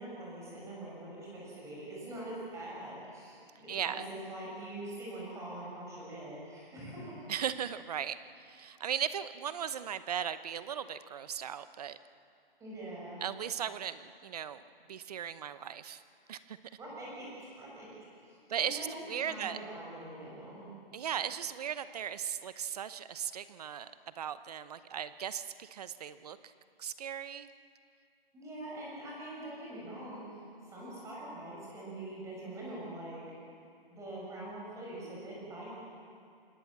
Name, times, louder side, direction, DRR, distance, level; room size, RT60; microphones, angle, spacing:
voice 1, 0.0-7.3 12.6-13.2 16.8-17.9 18.2-18.9 19.3-20.7 28.3-30.4 30.7-33.2 33.9-35.7, right 1 dB, 10° right, -5 dB, 6.8 m, -44 dB
voice 2, 3.7-4.0 7.3-12.0 13.2-14.6 14.9-16.0 16.3-16.6 18.5-19.6 20.9-26.5 26.8-27.5, right 9 dB, 40° right, 13 dB, 0.9 m, -37 dB
26.5 x 19.5 x 7.3 m, 2.4 s
hypercardioid pair, 150°, 30 cm